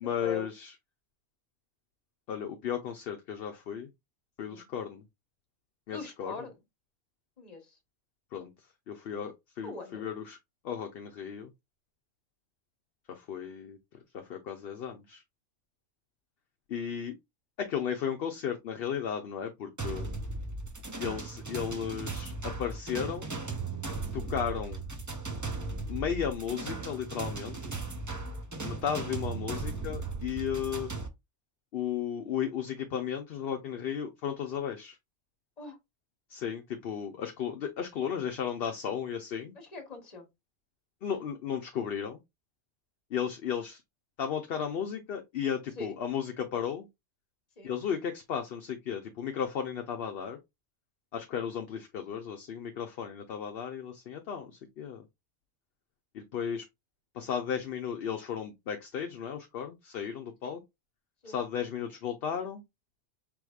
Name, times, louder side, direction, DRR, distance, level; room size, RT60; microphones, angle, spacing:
voice 1, 0.0-0.7 2.3-3.9 4.4-5.0 5.9-6.3 8.3-8.5 8.9-10.4 10.6-11.5 13.1-13.8 14.1-15.2 16.7-17.1 17.6-20.1 21.0-23.3 24.1-24.8 25.9-27.7 28.6-30.9 31.7-35.0 36.3-39.5 41.0-42.2 43.1-43.8 44.2-46.9 47.6-50.4 51.1-55.0 56.1-56.7 57.1-60.6 61.2-62.6, left 8 dB, 60° left, 0.8 m, -34 dB
voice 2, 5.9-6.5 7.4-7.8 9.6-10.0 28.6-28.8 35.6-35.8 39.5-40.2 45.8-46.0 47.6-47.7 60.4-60.6 61.2-61.4, left 4 dB, 35° left, 1.3 m, -42 dB
sound 1, 19.8-31.1, right 3 dB, 25° right, 0.4 m, -37 dB
4.8 x 3.5 x 2.3 m
omnidirectional pair, 1.3 m